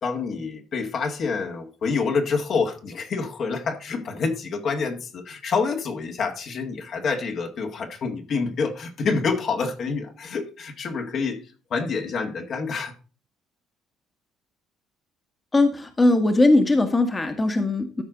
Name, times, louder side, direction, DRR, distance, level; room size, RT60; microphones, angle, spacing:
voice 1, 0.0-11.4 11.7-12.9, left 4 dB, 55° left, 2.0 m, -27 dB
voice 2, 15.5-18.0, left 2 dB, 25° left, 1.5 m, -20 dB
13.0 x 4.8 x 3.8 m
supercardioid pair, 70°, 0 cm